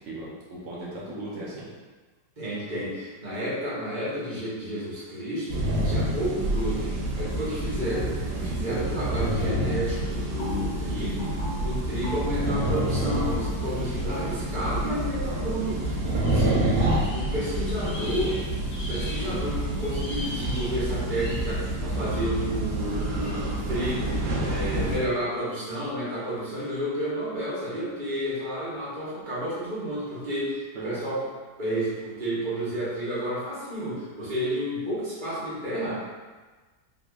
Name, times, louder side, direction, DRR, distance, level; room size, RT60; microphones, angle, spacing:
voice 1, 0.0-1.7 8.3-8.6 16.3-16.7 30.7-31.0, right 2 dB, 90° right, -6 dB, 0.6 m, -37 dB
voice 2, 2.4-18.4 18.8-31.2 31.6-36.1, equal, 30° right, -9 dB, 1.0 m, -31 dB
sound 1, 5.5-25.0, right 1 dB, 70° right, 1.1 m, -28 dB
sound 2, 7.9-8.3 8.7-9.1 9.5-15.3, equal, 40° left, 1.3 m, -40 dB
sound 3, 16.2-19.4 19.8-21.6 22.1-22.4 23.2-23.4, left 1 dB, 65° left, 1.2 m, -41 dB
3.7 x 2.9 x 2.3 m, 1.3 s
omnidirectional pair, 2.0 m